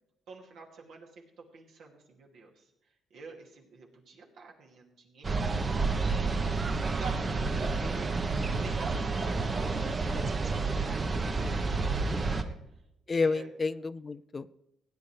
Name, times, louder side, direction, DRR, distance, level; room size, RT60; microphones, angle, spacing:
voice 1, 0.3-2.7 3.1-5.4 5.8-8.4 8.6-12.6 13.1-13.5, right 4 dB, 75° right, 0 dB, 2.4 m, -49 dB
sound 1, 5.2-12.4, right 3 dB, 35° right, 0.9 m, -30 dB
voice 2, 13.1-14.5, left 4 dB, 30° left, 15 dB, 0.4 m, -30 dB
16.5 x 9.4 x 3.3 m, 0.87 s
cardioid pair, 90°, 0 cm